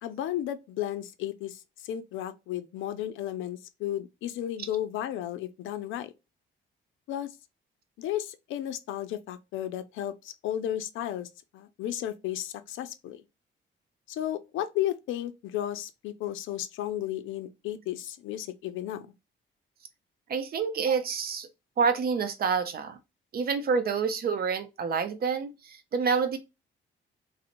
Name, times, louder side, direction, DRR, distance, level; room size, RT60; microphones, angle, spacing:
voice 1, 0.0-6.1 7.1-7.4 8.0-13.2 14.1-19.1, left 12 dB, 80° left, 0.4 m, -34 dB
voice 2, 20.3-21.5 21.8-23.0 23.3-26.4, right 5 dB, 50° right, 0.5 m, -28 dB
2.8 x 2.0 x 2.5 m
cardioid pair, 90°, 20 cm